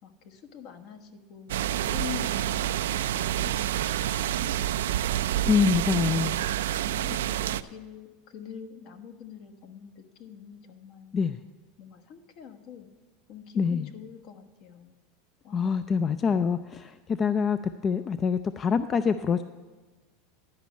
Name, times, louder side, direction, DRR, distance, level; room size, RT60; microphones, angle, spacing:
voice 1, 0.0-5.0 5.9-6.3 6.7-11.2 11.8-12.9 13.3-15.0 15.4-15.8, left 9 dB, 55° left, 7 dB, 1.2 m, -45 dB
sound 1, 1.5-7.6, right 12 dB, 85° right, 0.3 m, -28 dB
voice 2, 5.4-6.4 11.1-11.4 13.6-13.9 15.5-19.4, left 6 dB, 30° left, 12 dB, 0.3 m, -25 dB
11.5 x 5.2 x 8.3 m, 1.3 s
supercardioid pair, 115°, 0 cm